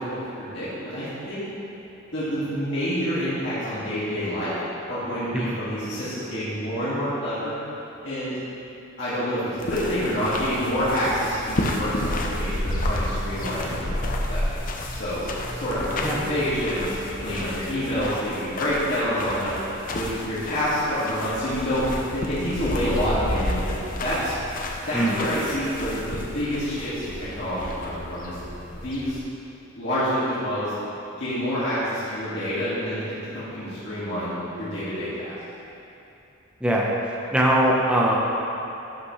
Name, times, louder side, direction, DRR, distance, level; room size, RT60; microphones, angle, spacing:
voice 1, 0.0-1.7 2.1-4.6 4.9-7.5 8.0-8.4 9.0-19.5 19.9-24.3 24.9-28.4 28.7-29.2 29.7-30.7 31.2-33.0 33.3-35.3, equal, 60° left, -12 dB, 1.9 m, -27 dB
sound 1, 9.6-29.2, left 1 dB, 40° left, 0.6 m, -31 dB
voice 2, 37.3-38.1, right 1 dB, 5° right, -4 dB, 0.9 m, -21 dB
11.5 x 5.9 x 3.2 m, 2.9 s
head